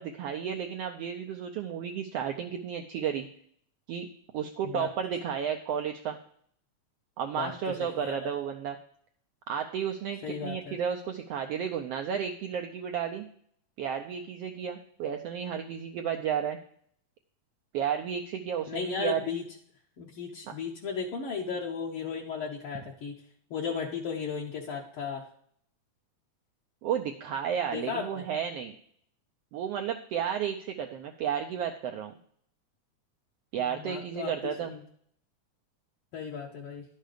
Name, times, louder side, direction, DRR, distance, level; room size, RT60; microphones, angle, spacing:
voice 1, 0.0-3.3 3.9-4.1 4.3-6.2 7.2-8.8 9.5-13.2 13.8-16.6 17.7-19.3 20.5-20.6 26.8-28.7 29.5-32.1 33.5-34.7, right 8 dB, 90° right, 4 dB, 1.3 m, -32 dB
voice 2, 7.8-8.3 10.2-10.8 18.7-19.4 20.0-23.2 23.5-25.3 27.7-28.2 33.6-34.8 36.1-36.8, left 6 dB, 65° left, -1 dB, 1.4 m, -35 dB
11.5 x 6.5 x 5.0 m, 0.63 s
omnidirectional pair, 3.5 m